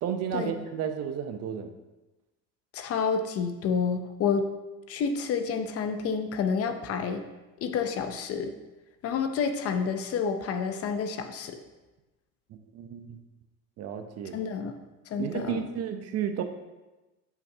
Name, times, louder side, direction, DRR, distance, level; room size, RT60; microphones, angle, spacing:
voice 1, 0.0-1.7 12.5-13.2 13.8-14.4 15.2-16.4, right 8 dB, 45° right, 7 dB, 0.6 m, -32 dB
voice 2, 2.7-4.5 4.9-7.2 7.6-8.5 9.0-11.6 14.3-14.8 15.1-15.7, left 6 dB, 40° left, 8 dB, 0.6 m, -29 dB
6.9 x 5.8 x 2.7 m, 1.1 s
supercardioid pair, 115°, 36 cm